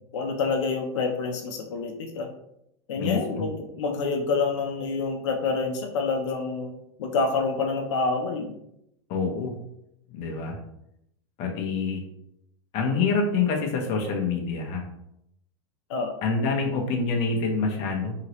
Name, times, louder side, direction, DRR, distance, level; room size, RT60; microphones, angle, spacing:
voice 1, 0.1-2.3 2.9-8.5 15.9-16.2, left 4 dB, 85° left, 3 dB, 0.5 m, -27 dB
voice 2, 3.0-3.5 9.1-9.5 10.1-10.6 11.4-12.0 12.7-14.8 16.2-18.2, left 4 dB, 40° left, 1 dB, 0.7 m, -26 dB
2.8 x 2.8 x 2.9 m, 0.78 s
supercardioid pair, 145°, 15 cm